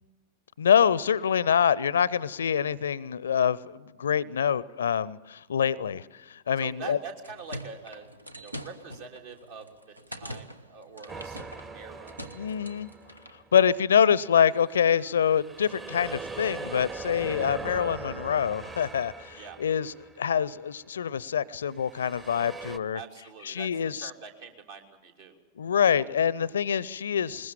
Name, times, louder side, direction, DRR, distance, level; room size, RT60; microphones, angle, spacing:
voice 1, 0.6-7.0 12.3-12.9 13.5-23.0 23.4-24.1 25.6-27.5, left 8 dB, 65° left, 0.6 m, -25 dB
voice 2, 6.6-8.1 8.4-12.2 19.4-19.6 22.9-23.7 23.9-25.4, right 5 dB, 60° right, 3.2 m, -44 dB
sound 1, 7.0-13.4, equal, 85° right, 1.1 m, -44 dB
sound 2, 11.1-13.6 14.1-20.6 21.7-22.8, right 3 dB, 20° right, 1.0 m, -41 dB
21.5 x 20.5 x 7.3 m
figure-of-eight pair, 90°, 0 cm